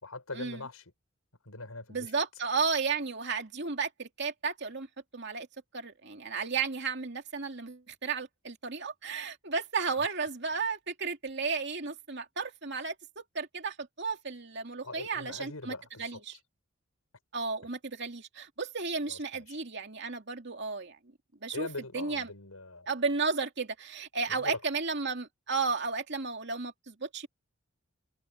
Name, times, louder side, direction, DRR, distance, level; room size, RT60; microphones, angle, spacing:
voice 1, 0.0-0.8 1.5-2.1 14.8-16.2 19.1-19.6 21.5-22.9 24.4-24.6, left 2 dB, 90° left, 6.0 m, -41 dB
voice 2, 1.9-4.9 5.1-5.5 5.7-16.4 17.3-21.0 21.4-21.7 21.9-22.3 22.9-27.3, right 4 dB, 50° right, 2.6 m, -33 dB
open air
head